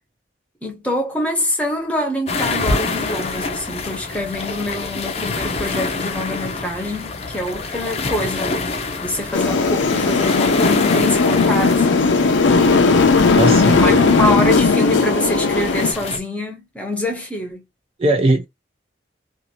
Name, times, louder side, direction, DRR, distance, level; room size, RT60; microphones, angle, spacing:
voice 1, 0.6-8.7 9.0-12.1 13.4-17.6, left 1 dB, 5° left, 0.9 m, -25 dB
sound 1, 2.3-16.2, left 3 dB, 35° left, 0.5 m, -27 dB
sound 2, 9.3-15.9, left 4 dB, 85° left, 0.6 m, -16 dB
voice 2, 13.4-14.1 18.0-18.4, right 2 dB, 30° right, 0.4 m, -19 dB
2.6 x 2.5 x 2.9 m
head